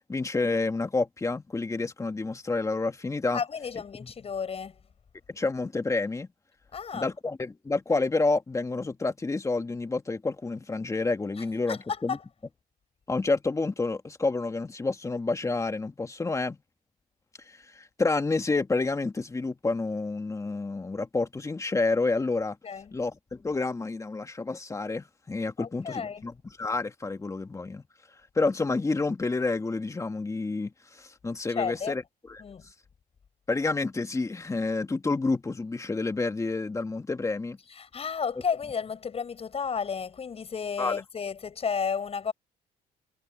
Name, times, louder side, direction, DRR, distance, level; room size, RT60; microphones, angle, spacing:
voice 1, 0.1-3.4 4.0-4.1 5.3-6.3 6.9-12.2 13.1-16.6 17.5-22.6 22.9-26.3 26.6-27.8 28.4-32.0 32.3-32.4 33.5-37.6 40.8-41.0, left 3 dB, 20° left, 2.1 m, -29 dB
voice 2, 3.3-4.8 6.7-7.1 11.4-12.2 22.6-23.0 25.6-26.2 31.5-32.0 32.4-32.7 37.7-42.3, left 6 dB, 35° left, 7.4 m, -32 dB
cardioid pair, 110°, 17 cm